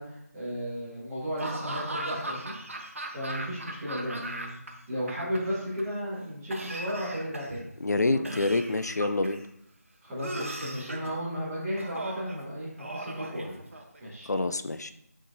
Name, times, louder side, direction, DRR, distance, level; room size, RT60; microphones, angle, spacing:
voice 1, 0.0-2.5 3.1-4.5 4.9-7.7 8.0-8.2 10.0-13.6 14.0-14.3, equal, 10° right, -11 dB, 1.5 m, -34 dB
Laughter / Cough, 1.4-4.7 5.0-5.8 6.5-7.6 8.2-9.4 10.2-11.1 11.8-12.4 12.8-14.0, right 1 dB, 50° right, 1.1 m, -37 dB
voice 2, 7.8-9.4 14.3-14.9, left 2 dB, 80° left, 11 dB, 0.5 m, -27 dB
7.4 x 5.8 x 2.7 m, 0.76 s
figure-of-eight pair, 175°, 9 cm